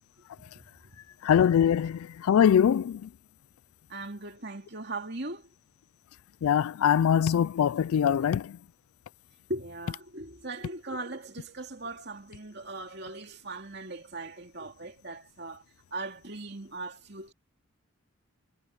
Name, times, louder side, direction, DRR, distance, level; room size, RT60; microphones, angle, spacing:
voice 1, 0.4-1.0 3.9-5.5 8.2-8.3 9.5-15.6 15.9-17.3, right 2 dB, 50° right, 3.0 m, -39 dB
voice 2, 1.2-3.0 6.4-8.5, left 8 dB, 85° left, 0.3 m, -23 dB
head